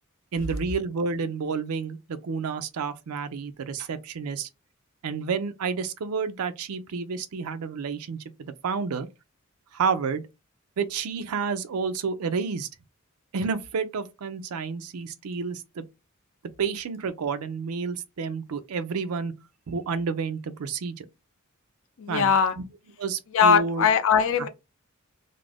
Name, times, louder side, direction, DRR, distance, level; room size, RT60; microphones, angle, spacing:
voice 1, 0.3-4.5 5.0-9.1 9.7-10.2 10.8-12.7 13.3-15.8 16.6-19.3 19.7-21.1 22.1-22.6 23.0-23.9, right 5 dB, 85° right, 0.4 m, -30 dB
voice 2, 22.0-22.6 23.3-24.5, left 6 dB, 65° left, 0.4 m, -20 dB
2.5 x 2.0 x 3.3 m
head